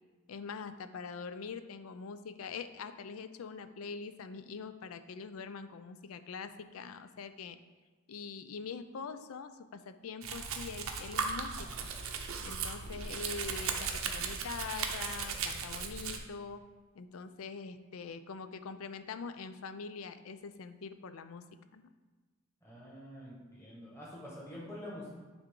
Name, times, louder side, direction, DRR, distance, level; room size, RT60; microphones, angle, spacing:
voice 1, 0.3-7.6 8.1-11.9 12.4-16.6 16.9-21.4 21.7-21.9, left 5 dB, 90° left, 10 dB, 0.4 m, -44 dB
Domestic sounds home sounds, 10.2-16.2, right 5 dB, 85° right, 0.7 m, -37 dB
voice 2, 22.6-25.1, left 1 dB, 15° left, -6 dB, 1.4 m, -46 dB
9.5 x 3.6 x 3.7 m, 1.3 s
head